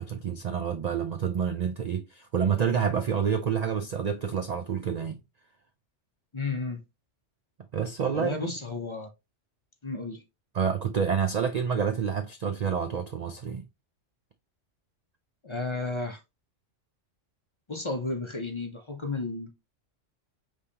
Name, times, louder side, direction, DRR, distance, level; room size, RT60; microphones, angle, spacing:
voice 1, 0.0-5.2 7.7-8.4 10.5-13.6, right 7 dB, 75° right, 0.3 m, -28 dB
voice 2, 6.3-6.8 8.1-9.1 9.8-10.2 15.4-16.2 17.7-19.5, left 3 dB, 30° left, 0.6 m, -32 dB
5.2 x 3.3 x 2.8 m
omnidirectional pair, 1.3 m